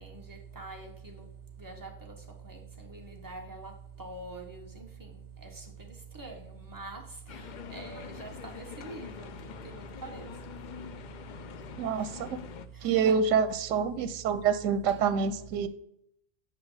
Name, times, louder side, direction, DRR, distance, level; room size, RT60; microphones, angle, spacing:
voice 1, 0.0-1.2 1.6-2.1 2.4-3.7 4.0-4.8 5.4-5.5 6.1-7.0 7.7-10.3 12.0-12.1 12.8-13.2 15.2-15.5, right 3 dB, 15° right, 1 dB, 1.2 m, -44 dB
sound 1, 7.3-12.7, left 8 dB, 65° left, 0.4 m, -45 dB
voice 2, 11.8-12.4 12.8-15.7, right 6 dB, 90° right, 12 dB, 1.0 m, -27 dB
5.9 x 5.7 x 4.8 m, 0.74 s
omnidirectional pair, 1.3 m